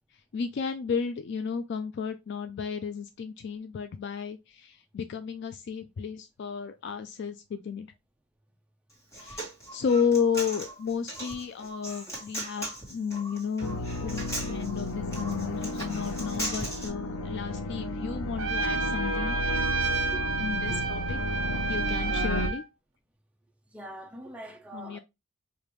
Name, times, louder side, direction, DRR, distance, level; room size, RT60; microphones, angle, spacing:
voice 1, 0.3-7.9 9.2-19.4 20.4-21.2 21.7-22.6 24.7-25.0, left 6 dB, 50° left, 0.3 m, -32 dB
Human voice, 8.9-16.9, right 1 dB, 15° left, 1.3 m, -38 dB
sound 1, 13.6-22.5, left 1 dB, 85° left, 0.7 m, -33 dB
Trumpet, 18.4-22.6, right 4 dB, 65° right, 0.6 m, -30 dB
voice 2, 20.0-20.9 23.7-25.0, right 1 dB, 5° right, 0.5 m, -43 dB
4.9 x 2.5 x 3.0 m
head